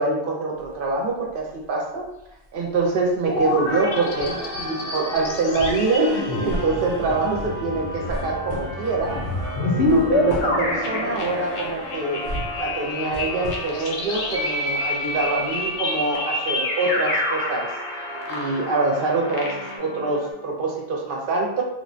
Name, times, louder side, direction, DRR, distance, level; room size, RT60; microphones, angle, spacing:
voice 1, 0.0-2.1 2.5-9.2 9.6-12.2 12.6-17.7 18.3-21.6, right 3 dB, 60° right, -1 dB, 0.7 m, -25 dB
sound 1, 0.5-1.7 2.0-15.7 16.1-16.2, equal, 55° left, 0.7 m, -38 dB
sound 2, 3.3-19.8, left 1 dB, 90° left, 0.9 m, -27 dB
sound 3, 3.8-20.3, right 1 dB, 30° right, 0.9 m, -36 dB
3.1 x 2.1 x 2.5 m, 0.89 s
omnidirectional pair, 1.1 m